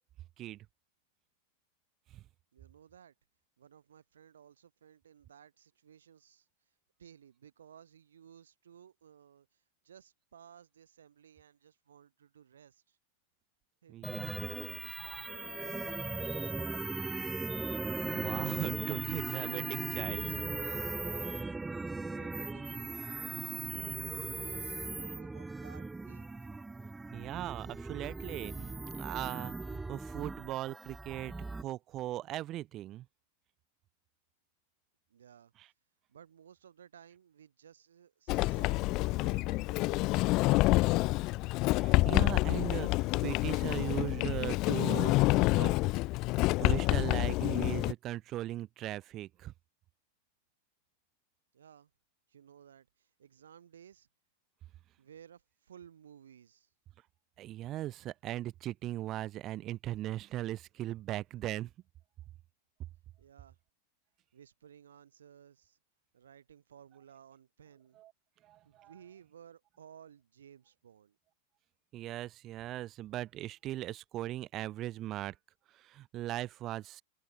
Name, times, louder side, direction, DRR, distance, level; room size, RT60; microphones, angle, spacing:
voice 1, 2.5-3.1 3.6-6.5 7.0-13.0 13.8-17.1 19.0-20.7 20.9-21.4 22.1-26.3 35.1-35.5 36.1-40.6 51.5-51.9 52.3-54.1 55.0-56.7 63.2-63.6 64.3-65.8 66.1-68.0 68.6-71.2, right 8 dB, 65° right, 7.5 m, -57 dB
voice 2, 13.9-14.4 18.0-20.2 27.1-31.3 31.6-33.1 35.6-35.7 41.8-45.7 46.6-49.5 57.4-61.7 68.0-68.1 68.4-68.9 71.9-75.3 75.7-77.0, right 14 dB, 35° right, 0.9 m, -39 dB
sound 1, 14.0-31.6, right 3 dB, 10° right, 1.9 m, -38 dB
Sliding door, 38.3-47.9, left 21 dB, 40° left, 0.4 m, -28 dB
open air
figure-of-eight pair, 90°, 0 cm